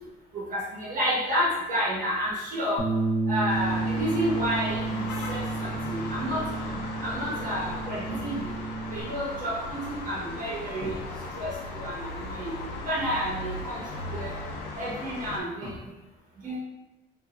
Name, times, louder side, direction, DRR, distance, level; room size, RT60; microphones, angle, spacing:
voice 1, 0.3-2.8 3.3-6.4 7.0-8.5 8.9-11.0 11.4-12.5 12.8-13.8 14.1-14.4 14.8-15.8 16.4-16.6, equal, 55° right, -6 dB, 1.2 m, -30 dB
Bass guitar, 2.8-9.0, right 3 dB, 30° right, 0.7 m, -31 dB
sound 1, 3.5-15.4, left 2 dB, 80° left, 0.5 m, -37 dB
2.8 x 2.6 x 2.5 m, 1.1 s
cardioid pair, 110°, 17 cm